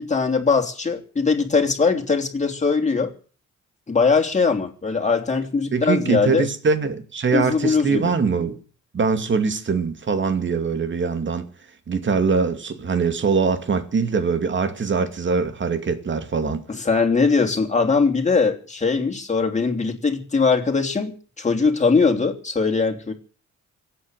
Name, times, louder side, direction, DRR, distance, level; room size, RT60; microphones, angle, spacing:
voice 1, 0.0-3.1 3.9-6.5 7.3-8.1 16.7-23.1, left 4 dB, 25° left, 3.3 m, -21 dB
voice 2, 5.7-8.6 8.9-11.5 11.9-16.6, right 5 dB, 40° right, 2.5 m, -22 dB
25.0 x 8.9 x 6.4 m
cardioid pair, 90°, 30 cm